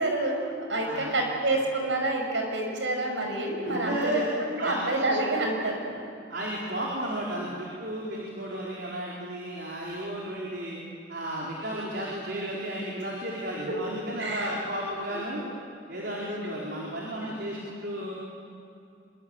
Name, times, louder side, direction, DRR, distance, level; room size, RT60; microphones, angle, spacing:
voice 1, 0.0-6.0 14.2-14.5 17.2-17.3, right 2 dB, 80° right, 2 dB, 6.1 m, -28 dB
voice 2, 0.8-1.1 1.4-1.5 3.6-4.3 4.6-4.8 6.3-10.8 11.1-15.4 15.9-18.1, right 1 dB, 65° right, -4 dB, 4.6 m, -33 dB
25.5 x 23.0 x 9.1 m, 2.5 s
head